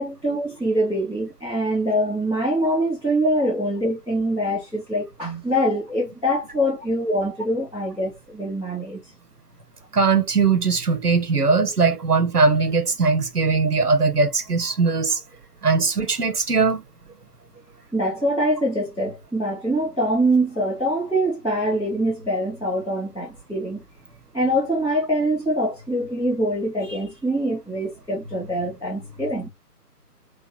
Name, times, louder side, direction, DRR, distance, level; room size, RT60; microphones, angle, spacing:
voice 1, 0.0-9.0 17.9-23.8 24.3-29.5, equal, ahead, 1.4 m, -24 dB
voice 2, 9.9-15.2 15.6-16.8, right 4 dB, 70° right, 1.3 m, -20 dB
6.0 x 2.9 x 3.1 m
figure-of-eight pair, 155°, 48 cm